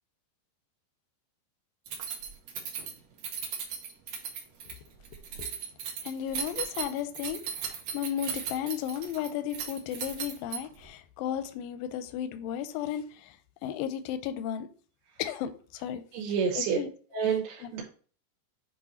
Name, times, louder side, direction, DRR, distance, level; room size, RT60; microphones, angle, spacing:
Keys jangling, 1.9-10.9, right 7 dB, 65° right, 2.3 m, -37 dB
voice 1, 6.0-13.4 13.6-14.7 15.2-16.0 16.6-16.9 17.6-17.7, left 10 dB, 80° left, 10 dB, 2.1 m, -34 dB
voice 2, 16.1-16.8 17.1-17.8, right 6 dB, 90° right, -1 dB, 2.9 m, -28 dB
7.9 x 3.0 x 4.1 m, 0.41 s
omnidirectional pair, 4.4 m